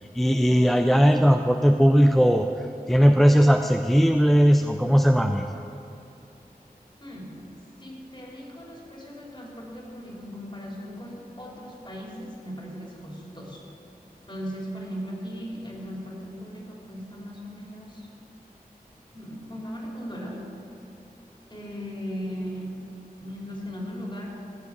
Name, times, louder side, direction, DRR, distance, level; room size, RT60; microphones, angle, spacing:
voice 1, 0.1-5.5, equal, ahead, 5 dB, 0.5 m, -19 dB
voice 2, 7.0-7.4 7.8-13.6 14.3-18.1 19.1-20.5 21.5-22.8 23.2-24.3, equal, 30° left, -3 dB, 2.9 m, -37 dB
15.0 x 5.1 x 8.5 m, 2.9 s
wide cardioid pair, 40°, 16 cm